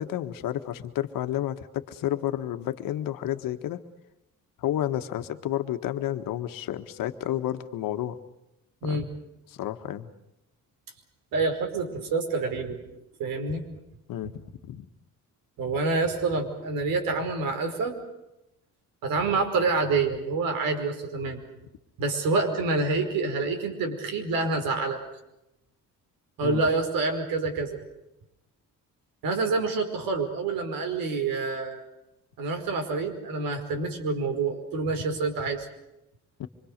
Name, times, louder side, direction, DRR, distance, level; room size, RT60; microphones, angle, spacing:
voice 1, 0.0-3.8 4.6-8.2 8.8-9.0 9.5-10.1 14.1-14.3 14.6-14.9 26.4-26.6 36.4-36.5, left 12 dB, 80° left, 9 dB, 1.6 m, -31 dB
voice 2, 11.3-12.8 13.2-13.7 15.6-18.0 19.0-21.4 22.0-25.0 26.4-27.8 29.2-31.8 32.4-35.7, right 3 dB, 90° right, 4 dB, 5.2 m, -27 dB
26.0 x 25.0 x 6.7 m, 0.89 s
cardioid pair, 175°, 33 cm